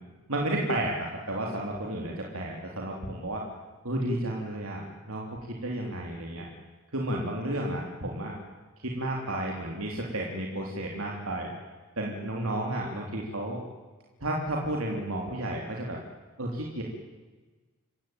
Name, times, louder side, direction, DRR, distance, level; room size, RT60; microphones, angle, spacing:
voice 1, 0.3-3.4 3.8-5.2 5.6-6.5 6.9-8.3 8.8-11.5 12.0-13.6 14.2-16.0 16.4-16.8, right 1 dB, 75° right, -1 dB, 3.4 m, -32 dB
28.0 x 16.0 x 8.9 m, 1.3 s
head